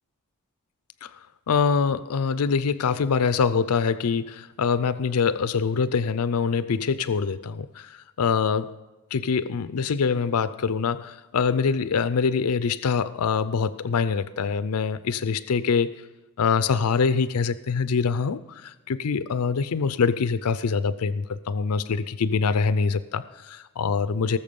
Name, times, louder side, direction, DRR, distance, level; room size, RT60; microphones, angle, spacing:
voice 1, 1.5-8.8 9.1-16.0 16.4-24.4, left 5 dB, 85° left, 14 dB, 0.5 m, -24 dB
18.5 x 7.1 x 5.3 m, 1.1 s
head